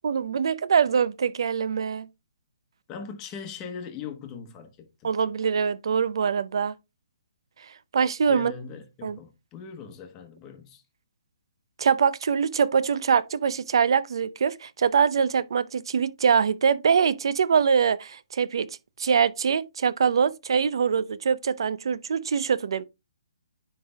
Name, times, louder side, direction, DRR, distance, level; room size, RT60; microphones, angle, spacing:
voice 1, 0.0-2.1 5.0-6.7 7.9-8.5 9.0-9.2 11.8-18.7 19.0-22.8, right 6 dB, 65° right, 0.5 m, -23 dB
voice 2, 2.9-5.1 8.3-10.8, left 6 dB, 15° left, 1.1 m, -40 dB
9.7 x 3.4 x 3.4 m
hypercardioid pair, 165°, 3 cm